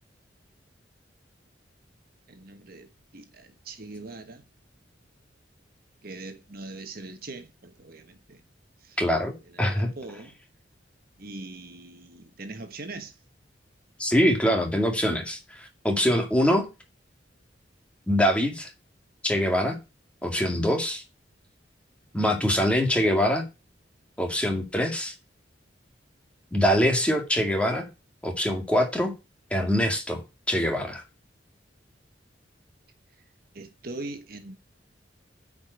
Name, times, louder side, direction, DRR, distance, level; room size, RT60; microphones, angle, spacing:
voice 1, 2.3-2.9 3.1-4.4 6.0-8.4 8.8-9.0 9.5-10.4 11.2-13.2 33.5-34.6, right 2 dB, 55° right, 1.4 m, -41 dB
voice 2, 9.0-9.9 14.0-16.7 18.1-18.7 19.2-19.8 20.2-21.0 22.1-23.4 24.2-25.1 26.5-27.9 28.2-29.1 29.5-30.2 30.5-31.0, equal, 5° left, 2.1 m, -24 dB
8.9 x 5.3 x 8.0 m
head